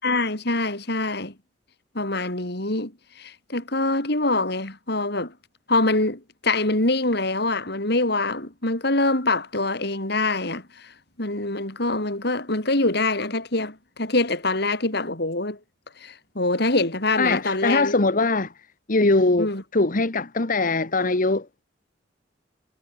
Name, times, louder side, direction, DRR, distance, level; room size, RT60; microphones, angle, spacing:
voice 1, 0.0-1.3 1.9-5.3 5.7-10.9 11.2-15.6 16.0-17.9 19.4-19.6, left 2 dB, 65° left, 5.1 m, -24 dB
voice 2, 17.2-18.5 18.9-21.5, left 2 dB, 50° left, 1.4 m, -21 dB
head